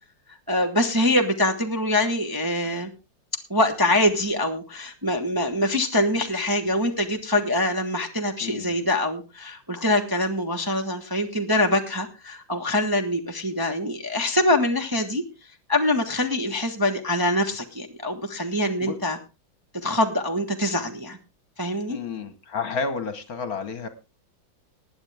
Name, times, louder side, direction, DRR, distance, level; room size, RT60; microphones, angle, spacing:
voice 1, 0.5-2.9 3.5-15.2 15.7-19.2 19.7-21.2 21.6-22.0, left 1 dB, 15° right, 3 dB, 1.0 m, -24 dB
voice 2, 8.4-8.8 18.8-19.0 21.9-23.9, left 5 dB, 55° left, 10 dB, 1.6 m, -31 dB
20.0 x 8.9 x 3.4 m, 0.29 s
omnidirectional pair, 2.0 m